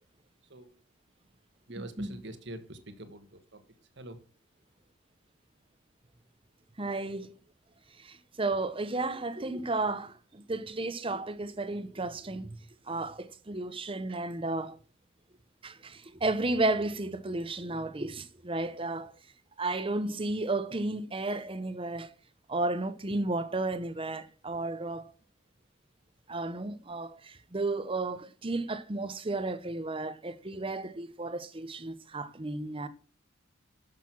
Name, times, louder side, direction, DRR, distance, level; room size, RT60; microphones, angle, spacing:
voice 1, 1.7-3.6 4.0-4.2, right 1 dB, 55° right, 1.5 m, -45 dB
voice 2, 6.8-7.3 8.0-12.6 12.9-14.8 15.6-19.1 19.6-22.1 22.5-25.1 26.3-32.9, right 2 dB, 25° right, 0.8 m, -33 dB
12.0 x 6.7 x 6.1 m
head